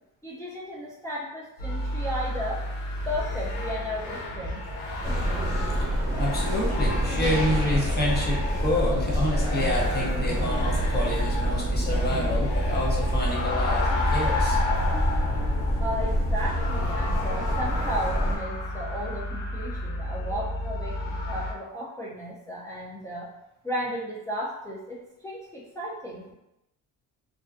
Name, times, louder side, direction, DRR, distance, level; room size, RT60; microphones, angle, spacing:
voice 1, 0.2-2.6 3.1-4.6 15.8-23.3 23.6-26.3, equal, 10° left, -5 dB, 0.3 m, -34 dB
sound 1, 1.6-21.5, left 2 dB, 75° left, 0.6 m, -31 dB
sound 2, 3.0-12.2, equal, 40° right, 0.6 m, -40 dB
sound 3, 5.0-18.4, equal, 10° right, 1.0 m, -27 dB
voice 2, 5.9-14.6, left 1 dB, 25° left, -3 dB, 0.8 m, -28 dB
2.5 x 2.1 x 2.4 m, 0.91 s
cardioid pair, 95°, 36 cm